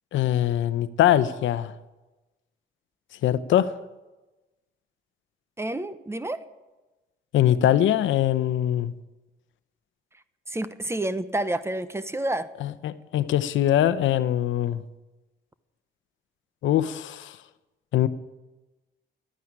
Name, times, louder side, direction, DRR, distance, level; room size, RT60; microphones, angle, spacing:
voice 1, 0.1-1.7 3.2-3.7 7.3-8.9 12.6-14.8 16.6-17.4 17.9-18.1, left 11 dB, 75° left, 0.8 m, -22 dB
voice 2, 5.6-6.4 10.5-12.5, right 1 dB, 15° right, 0.9 m, -29 dB
12.5 x 9.4 x 10.0 m
cardioid pair, 90°, 20 cm